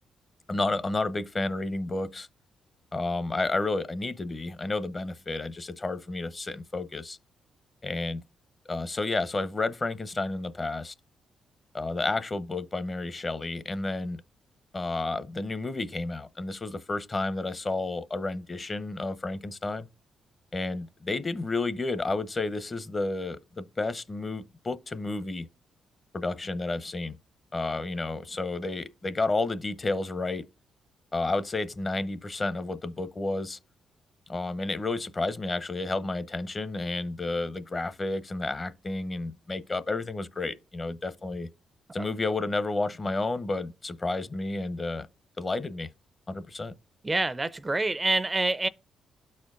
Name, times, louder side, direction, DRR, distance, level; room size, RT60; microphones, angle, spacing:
voice 1, 0.5-2.3 2.9-7.2 7.8-8.2 8.7-10.9 11.7-14.2 14.7-19.9 20.5-25.5 26.1-27.2 27.5-30.4 31.1-33.6 34.3-41.5 41.9-45.1 45.4-45.9 46.3-46.7, left 2 dB, 35° left, 0.7 m, -31 dB
voice 2, 47.0-48.7, right 2 dB, 25° right, 0.4 m, -26 dB
12.5 x 4.3 x 2.4 m
supercardioid pair, 65°, 0 cm